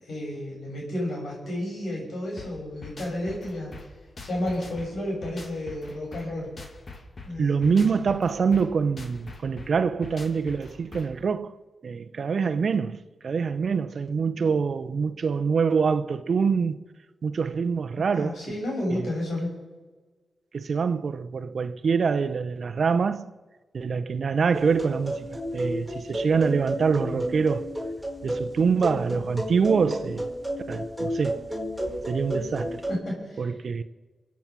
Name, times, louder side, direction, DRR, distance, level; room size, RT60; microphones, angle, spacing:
voice 1, 0.0-3.7 4.2-6.5 7.2-7.9 18.1-19.5 32.9-33.5, left 1 dB, 75° left, 6.5 m, -31 dB
sound 1, 2.4-11.2, left 3 dB, 55° left, 2.1 m, -44 dB
voice 2, 7.4-11.5 11.8-16.8 17.2-18.5 18.9-19.1 20.5-23.3 23.7-25.3 25.5-27.8 28.2-30.3 30.7-31.5 32.1-32.8 33.4-33.8, right 5 dB, 70° right, 0.8 m, -25 dB
sound 2, 24.5-33.0, equal, 5° left, 4.7 m, -32 dB
24.5 x 8.5 x 6.1 m
cardioid pair, 45°, 0 cm